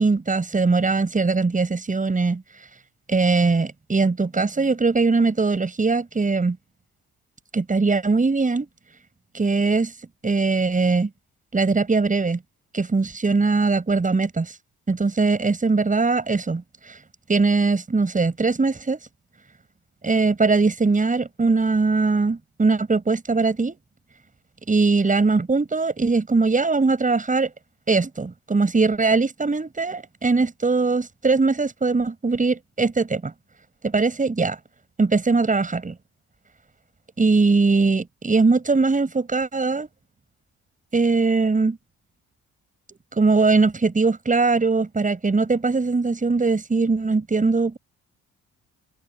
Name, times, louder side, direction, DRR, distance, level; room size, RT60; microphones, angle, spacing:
voice 1, 0.0-2.4 3.1-6.6 7.5-8.7 9.3-9.9 10.2-11.1 11.5-12.4 12.7-14.6 14.9-17.0 17.3-19.0 20.0-23.8 24.7-27.5 27.9-33.3 33.8-34.6 35.0-35.9 37.2-39.9 40.9-41.8 43.2-47.8, right 3 dB, 25° right, 8.0 m, -21 dB
cardioid pair, 90°, 30 cm